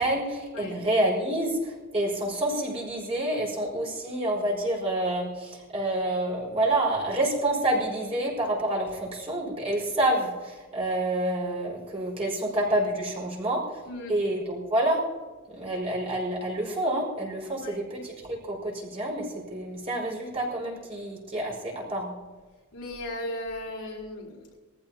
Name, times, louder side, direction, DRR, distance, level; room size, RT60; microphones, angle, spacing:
voice 1, 0.0-13.8 14.1-15.1 15.5-22.2, right 1 dB, 30° right, -3 dB, 5.4 m, -28 dB
voice 2, 13.9-14.2 17.5-17.8 22.7-24.6, left 1 dB, 85° left, -3 dB, 4.5 m, -37 dB
23.5 x 14.5 x 2.9 m, 1.3 s
head